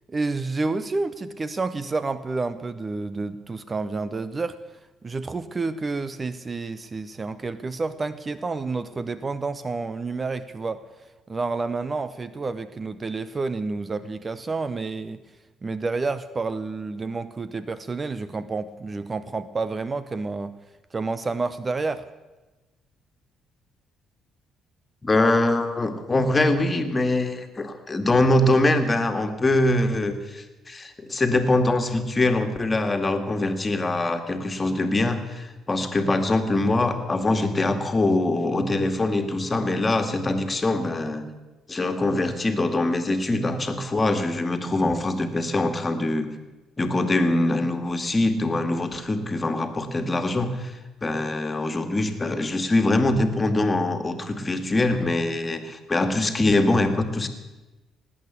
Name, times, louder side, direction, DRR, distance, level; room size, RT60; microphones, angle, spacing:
voice 1, 0.1-4.6 5.0-10.8 11.3-15.2 15.6-20.5 20.9-22.1, right 3 dB, 30° right, 14 dB, 0.8 m, -29 dB
voice 2, 25.0-41.2 41.7-46.3 46.8-50.7 51.0-57.3, left 2 dB, 25° left, 7 dB, 2.1 m, -23 dB
18.5 x 8.8 x 8.3 m, 1.1 s
hypercardioid pair, 55°, 0 cm